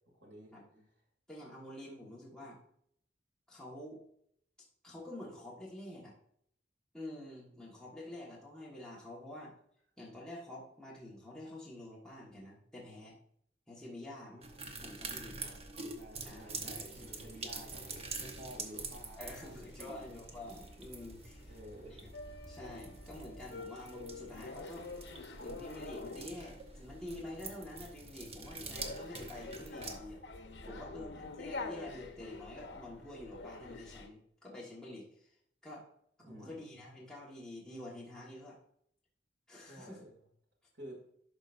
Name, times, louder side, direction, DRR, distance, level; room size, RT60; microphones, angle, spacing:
voice 1, 0.1-0.5 14.3-14.8 15.4-20.1 21.5-22.0 30.9-31.3 36.2-36.6 39.6-40.1 40.7-41.0, equal, 75° right, -1 dB, 2.5 m, -52 dB
voice 2, 1.3-2.6 3.5-4.0 4.8-6.1 6.9-9.5 10.0-13.1 13.7-14.5 14.8-15.4 16.2-16.7 19.2-21.5 21.9-22.1 22.4-24.8 25.4-30.2 30.6-35.3 35.6-35.9 36.2-38.6 39.5-40.0, left 1 dB, 5° left, -6 dB, 1.5 m, -48 dB
sound 1, 14.4-29.9, right 3 dB, 35° right, 0.9 m, -46 dB
sound 2, 16.4-34.1, left 3 dB, 70° left, 1.0 m, -49 dB
11.5 x 5.0 x 2.5 m, 0.68 s
head